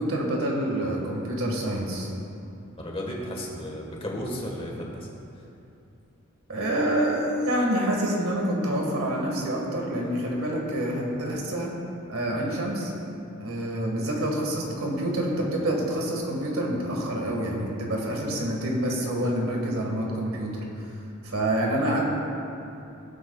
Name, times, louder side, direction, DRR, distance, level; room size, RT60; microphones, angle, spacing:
voice 1, 0.0-2.1 6.5-11.7 12.1-12.9 13.4-20.5 21.2-22.1, right 1 dB, 90° right, -1 dB, 1.8 m, -27 dB
voice 2, 2.8-5.1, equal, 25° left, -1 dB, 1.5 m, -34 dB
17.5 x 8.1 x 2.4 m, 2.7 s
head